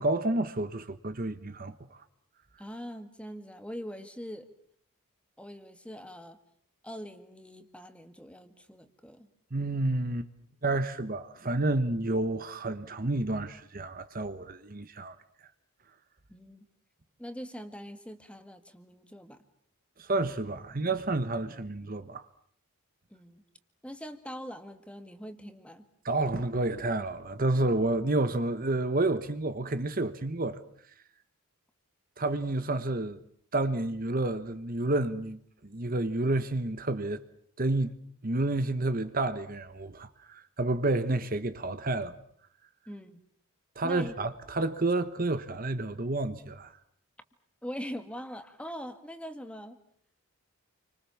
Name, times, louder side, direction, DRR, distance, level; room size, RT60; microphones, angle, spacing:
voice 1, 0.0-2.0 9.5-10.3 10.6-15.2 20.0-22.2 26.0-30.6 32.2-33.2 33.5-37.2 37.6-37.9 38.2-42.1 43.8-46.7, right 2 dB, 40° right, 1.2 m, -30 dB
voice 2, 2.6-4.5 5.4-6.4 6.8-9.3 16.3-16.6 17.2-19.4 23.1-23.4 23.8-25.8 42.9-43.2 43.8-44.2 47.6-49.8, equal, 5° left, 1.8 m, -42 dB
29.5 x 25.0 x 7.2 m
head